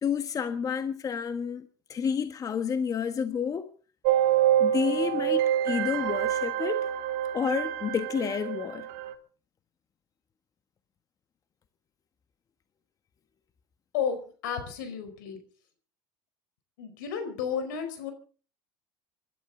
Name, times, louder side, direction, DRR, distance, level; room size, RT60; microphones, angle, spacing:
voice 1, 0.0-3.7 4.6-6.8 7.3-8.9, left 7 dB, 35° left, 1.5 m, -30 dB
sound 1, 4.0-9.1, right 11 dB, 80° right, 2.1 m, -27 dB
voice 2, 13.9-15.4 16.8-18.1, left 7 dB, 85° left, 4.7 m, -32 dB
26.0 x 12.5 x 3.9 m
supercardioid pair, 90°, 10 cm